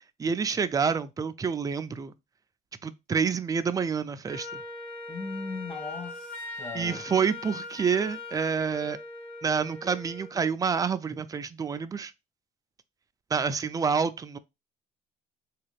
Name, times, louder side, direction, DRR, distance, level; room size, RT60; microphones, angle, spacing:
voice 1, 0.2-2.1 2.8-4.6 6.7-9.0 9.4-12.1 13.3-14.4, right 6 dB, 20° right, 0.3 m, -28 dB
Wind instrument woodwind instrument, 4.3-10.4, left 3 dB, 5° left, 1.0 m, -41 dB
voice 2, 5.1-7.0, left 4 dB, 30° left, 1.8 m, -38 dB
3.6 x 2.3 x 3.3 m
cardioid pair, 110°, 17 cm